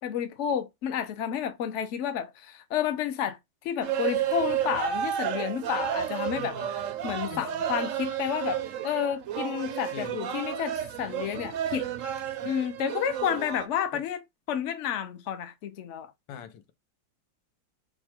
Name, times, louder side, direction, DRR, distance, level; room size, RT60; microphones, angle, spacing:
voice 1, 0.0-3.4 3.6-6.6 7.0-11.9 12.4-14.2 14.5-16.1, left 9 dB, 55° left, 0.8 m, -30 dB
sound 1, 3.8-13.7, right 10 dB, 70° right, 0.8 m, -32 dB
voice 2, 6.3-6.7 7.3-7.5 9.9-10.2 12.4-12.5 13.9-14.0 16.3-16.7, left 9 dB, 90° left, 1.5 m, -43 dB
4.5 x 2.3 x 4.3 m
omnidirectional pair, 1.9 m